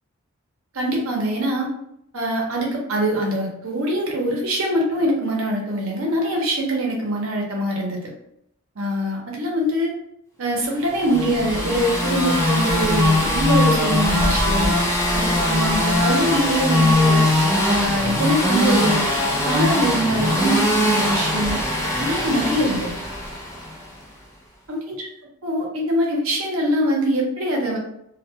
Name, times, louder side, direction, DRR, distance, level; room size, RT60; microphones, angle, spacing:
voice 1, 0.7-1.7 2.1-8.1 8.8-9.9 10.4-14.7 15.1-19.0 19.4-21.6 22.0-22.9 24.7-25.1 25.4-27.8, equal, 70° right, -1 dB, 0.7 m, -23 dB
sound 1, 10.9-23.8, left 1 dB, 15° left, 0.5 m, -21 dB
2.2 x 2.1 x 2.7 m, 0.77 s
head